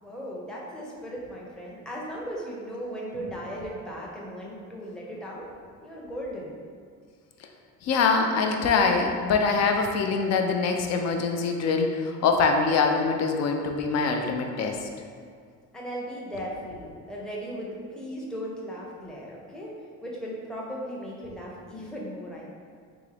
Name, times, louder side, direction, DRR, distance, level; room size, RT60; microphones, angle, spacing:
voice 1, 0.0-5.5 5.8-6.6 15.7-19.7 20.0-22.5, equal, ahead, -4 dB, 0.6 m, -37 dB
voice 2, 7.8-14.9, left 4 dB, 60° left, 3 dB, 0.5 m, -24 dB
3.6 x 2.9 x 3.3 m, 2.1 s
cardioid pair, 115°, 30 cm